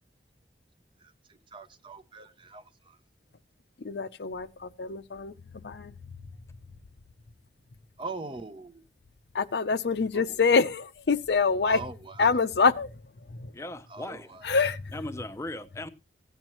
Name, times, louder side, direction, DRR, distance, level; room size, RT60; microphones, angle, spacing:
voice 1, 1.5-3.0 8.0-8.8 10.1-10.4 11.7-12.5 13.9-14.4, right 3 dB, 30° right, 0.7 m, -42 dB
voice 2, 3.8-5.3 5.6-5.9 9.3-11.8 12.2-12.9 13.4-13.5 14.4-14.8, left 4 dB, 70° left, 0.6 m, -25 dB
voice 3, 13.5-14.4 14.9-15.9, left 1 dB, 15° left, 0.7 m, -38 dB
16.0 x 8.9 x 3.0 m
head